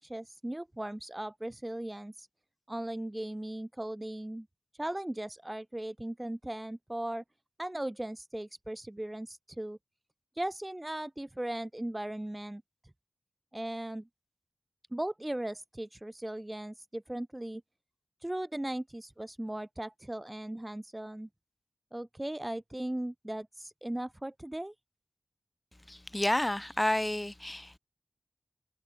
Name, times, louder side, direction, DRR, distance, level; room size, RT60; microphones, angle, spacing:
voice 1, 0.0-2.3 2.7-4.5 4.8-7.2 7.6-9.8 10.3-12.6 13.5-14.1 14.9-17.6 18.2-21.3 21.9-24.7, right 1 dB, 15° right, 2.7 m, -38 dB
voice 2, 25.9-27.8, left 1 dB, 15° left, 3.1 m, -30 dB
wide cardioid pair, 80°, 0 cm